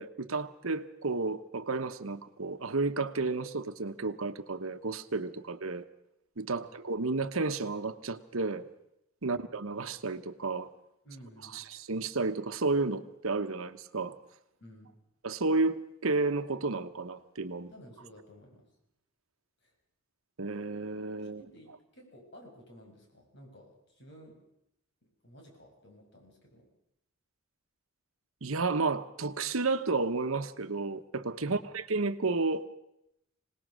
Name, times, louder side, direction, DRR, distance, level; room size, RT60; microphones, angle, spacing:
voice 1, 0.0-5.8 6.4-8.7 9.2-10.7 11.5-14.1 15.2-17.7 20.4-21.4 28.4-32.7, right 3 dB, 80° right, 10 dB, 1.1 m, -32 dB
voice 2, 11.0-11.6 14.6-15.0 17.7-18.7 19.6-19.7 21.2-24.4 25.2-26.7 31.4-31.7, equal, 55° left, 2 dB, 6.3 m, -54 dB
25.5 x 19.0 x 6.3 m, 0.79 s
head